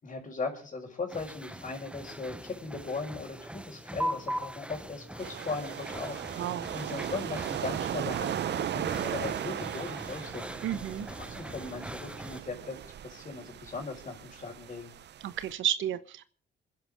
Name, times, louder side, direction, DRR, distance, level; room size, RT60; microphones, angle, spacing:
voice 1, 0.0-10.6 11.2-12.7 13.0-14.9, left 4 dB, 40° left, -3 dB, 4.8 m, -38 dB
sound 1, 1.1-12.4, equal, 5° right, 1.0 m, -41 dB
sound 2, 5.2-15.5, right 10 dB, 60° right, 0.7 m, -37 dB
voice 2, 6.4-6.7 10.6-11.1 15.2-16.2, right 10 dB, 75° right, 12 dB, 1.2 m, -31 dB
27.0 x 10.5 x 3.5 m, 0.43 s
cardioid pair, 90°, 20 cm